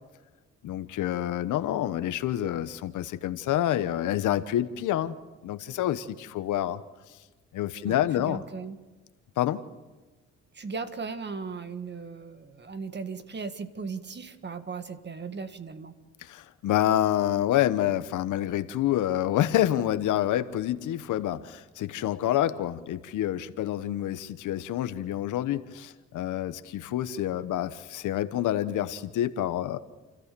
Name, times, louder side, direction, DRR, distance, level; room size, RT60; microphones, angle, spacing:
voice 1, 0.6-5.2 5.4-6.8 7.5-8.4 9.4-9.6 16.2-29.8, left 12 dB, 80° left, 12 dB, 1.1 m, -27 dB
voice 2, 7.8-8.8 10.5-16.0, right 5 dB, 35° right, 10 dB, 1.8 m, -37 dB
29.0 x 14.0 x 6.9 m, 1.3 s
cardioid pair, 90°, 30 cm